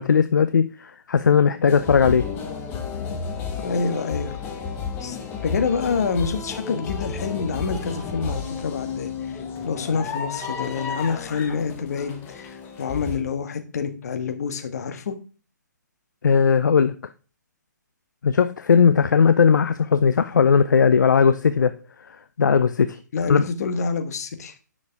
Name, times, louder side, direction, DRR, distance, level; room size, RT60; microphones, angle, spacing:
voice 1, 0.0-2.3 16.2-16.9 18.2-21.8 22.4-23.0 23.3-23.5, left 6 dB, 75° left, 0.6 m, -18 dB
sound 1, 1.6-13.2, left 5 dB, 20° left, 1.4 m, -32 dB
voice 2, 3.6-4.3 5.0-5.2 5.4-9.1 9.6-15.2 23.1-24.5, left 5 dB, 55° left, 1.5 m, -27 dB
9.8 x 6.3 x 3.5 m
hypercardioid pair, 140°, 10 cm